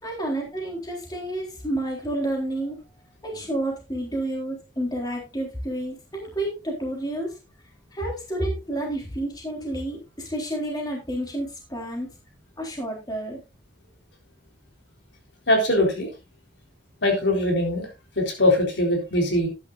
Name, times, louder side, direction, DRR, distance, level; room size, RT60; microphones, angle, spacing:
voice 1, 0.0-2.8 3.2-7.4 7.9-12.1 12.6-13.4, right 1 dB, 20° left, -1 dB, 3.7 m, -30 dB
voice 2, 15.5-16.1 17.0-17.9 18.2-19.5, left 1 dB, 70° left, 1 dB, 3.9 m, -21 dB
13.0 x 10.5 x 2.5 m, 0.27 s
head